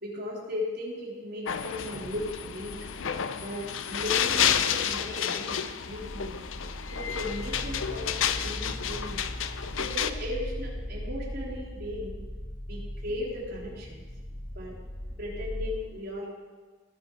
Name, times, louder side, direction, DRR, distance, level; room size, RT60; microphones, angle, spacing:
voice 1, 0.0-2.8 3.4-5.6 5.8-6.4 6.9-9.2 9.8-12.2 12.7-14.1 14.5-14.8 15.2-16.3, left 1 dB, 50° right, -4 dB, 3.6 m, -36 dB
sound 1, 1.5-10.1, left 8 dB, 70° left, 0.6 m, -30 dB
sound 2, 6.0-15.7, equal, 40° left, 1.4 m, -38 dB
18.0 x 7.7 x 4.6 m, 1.3 s
head